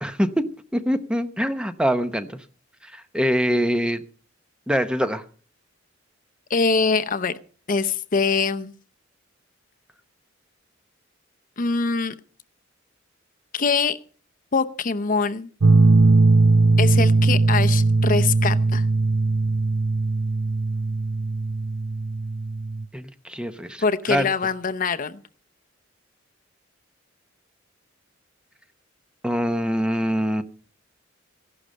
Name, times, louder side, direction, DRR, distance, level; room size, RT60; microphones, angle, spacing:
voice 1, 0.0-2.4 2.8-4.0 4.7-5.2 22.9-24.3 29.2-30.4, equal, 5° right, 0.7 m, -24 dB
voice 2, 6.5-7.3 7.7-8.7 11.6-12.1 13.5-14.0 14.5-15.5 16.8-18.9 23.8-25.2, left 4 dB, 45° left, 0.7 m, -23 dB
sound 1, 15.6-22.8, right 3 dB, 65° right, 0.7 m, -19 dB
15.5 x 11.5 x 5.4 m
head